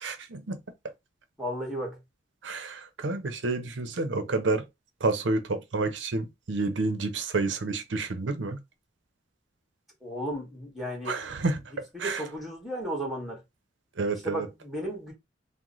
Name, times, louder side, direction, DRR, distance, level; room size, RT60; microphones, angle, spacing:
voice 1, 0.0-0.6 2.4-4.6 5.0-8.6 11.0-11.6 12.0-12.3 14.0-14.5, right 3 dB, 75° right, 0.6 m, -29 dB
voice 2, 1.4-2.0 10.0-11.1 11.9-13.4 14.2-15.1, equal, ahead, 1.3 m, -34 dB
3.0 x 2.1 x 3.8 m
head